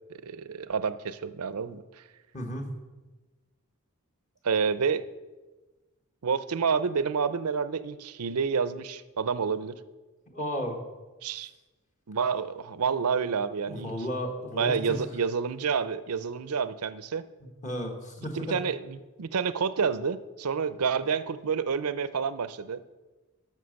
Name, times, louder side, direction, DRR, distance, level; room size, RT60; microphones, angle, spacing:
voice 1, 0.1-1.8 4.4-5.1 6.2-9.8 11.2-11.5 12.1-13.9 14.6-17.3 18.3-23.0, right 6 dB, 80° right, 14 dB, 0.6 m, -29 dB
voice 2, 2.3-2.7 10.3-10.8 13.7-15.0 17.6-18.6, equal, 35° left, 2 dB, 1.4 m, -33 dB
13.0 x 5.9 x 6.5 m, 1.2 s
head